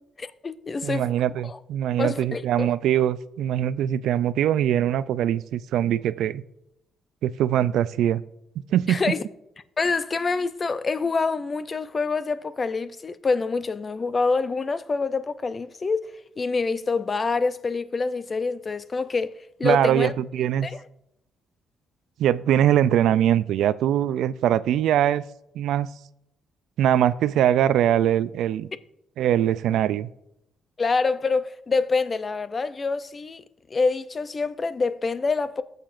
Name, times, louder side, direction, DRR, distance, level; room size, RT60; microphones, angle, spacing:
voice 1, 0.2-1.1 1.4-1.6 2.0-2.7 8.9-9.2 9.8-16.0 16.4-19.3 19.6-20.1 20.6-20.8 30.8-33.4 33.7-35.6, left 4 dB, 35° left, 0.5 m, -26 dB
voice 2, 0.8-6.4 7.2-8.2 8.7-9.0 19.6-20.7 22.2-25.2 25.6-25.9 26.8-28.7 29.2-30.1, right 11 dB, 80° right, 0.3 m, -22 dB
19.0 x 6.7 x 2.5 m
cardioid pair, 90°, 0 cm